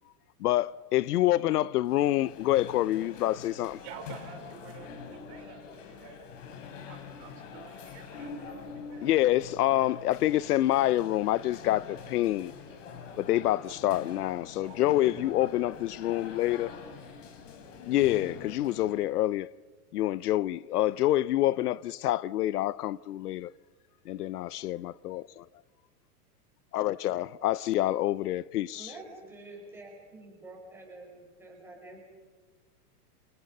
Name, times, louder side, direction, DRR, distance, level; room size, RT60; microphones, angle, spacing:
voice 1, 0.4-3.8 9.0-12.5 13.2-16.7 17.9-19.5 19.9-23.5 24.1-25.2 26.7-28.9, left 14 dB, 75° left, 0.7 m, -27 dB
sound 1, 1.8-19.1, left 5 dB, 50° left, 4.2 m, -45 dB
voice 2, 3.8-6.3 6.8-9.1 14.6-14.8 15.1-15.5 16.0-16.1, right 6 dB, 30° right, 4.3 m, -49 dB
voice 3, 28.7-32.1, right 2 dB, 5° right, 5.6 m, -48 dB
29.5 x 28.5 x 5.4 m
supercardioid pair, 175°, 47 cm